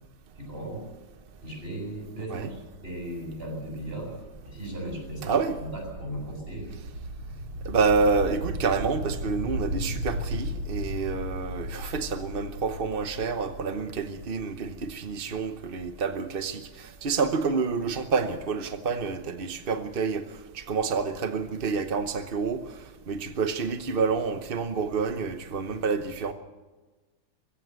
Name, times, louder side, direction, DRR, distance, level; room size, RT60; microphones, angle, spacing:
voice 1, 0.4-0.8 1.4-4.2 4.4-5.4 5.7-6.7, right 1 dB, 25° right, 7.7 m, -37 dB
sound 1, 2.6-16.2, equal, 90° right, 3.4 m, -37 dB
voice 2, 5.2-5.6 7.6-22.7 23.1-26.3, right 5 dB, 45° right, 0.7 m, -28 dB
21.5 x 15.5 x 8.1 m
omnidirectional pair, 2.3 m